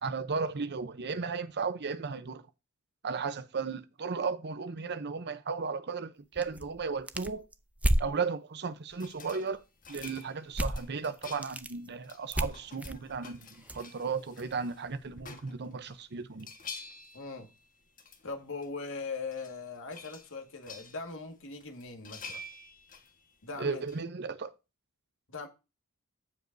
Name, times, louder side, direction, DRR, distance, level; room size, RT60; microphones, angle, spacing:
voice 1, 0.0-2.4 3.0-7.4 8.0-9.6 9.9-16.5 23.6-24.5, right 5 dB, 50° right, 0.7 m, -35 dB
sound 1, 6.4-8.1 9.9-10.2 10.5-10.9 11.2-11.7 12.3-13.8, right 1 dB, 5° right, 0.5 m, -31 dB
sound 2, 8.9-16.0 16.3-18.3 18.6-18.7 19.1-19.6 19.9-21.2 21.6-24.0, left 3 dB, 40° left, 1.5 m, -49 dB
voice 2, 17.1-17.5 18.2-22.4 23.4-23.8 25.3-25.5, left 4 dB, 60° left, 1.9 m, -40 dB
15.5 x 5.2 x 2.7 m
head